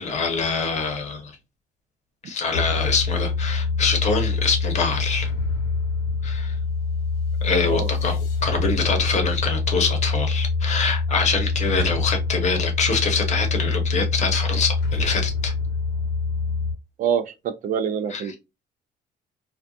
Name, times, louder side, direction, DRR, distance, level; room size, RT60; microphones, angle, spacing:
voice 1, 0.0-1.3 2.2-5.3 6.2-6.6 7.4-15.5 18.1-18.2, left 4 dB, 45° left, 0.8 m, -25 dB
sound 1, 2.5-16.7, left 4 dB, 80° left, 0.8 m, -25 dB
voice 2, 17.0-18.4, right 8 dB, 50° right, 0.4 m, -25 dB
2.4 x 2.3 x 2.6 m
cardioid pair, 110°, 17 cm